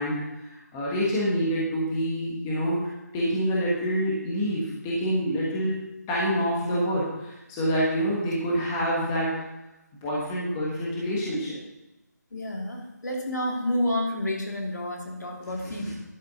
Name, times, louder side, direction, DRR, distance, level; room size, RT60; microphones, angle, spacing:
voice 1, 0.0-2.8 3.1-5.8 6.1-9.4 9.9-11.6 15.6-15.9, equal, 10° left, -6 dB, 1.3 m, -27 dB
voice 2, 12.3-16.0, left 1 dB, 85° left, 1 dB, 2.8 m, -29 dB
11.5 x 8.6 x 4.1 m, 0.96 s
figure-of-eight pair, 175°, 9 cm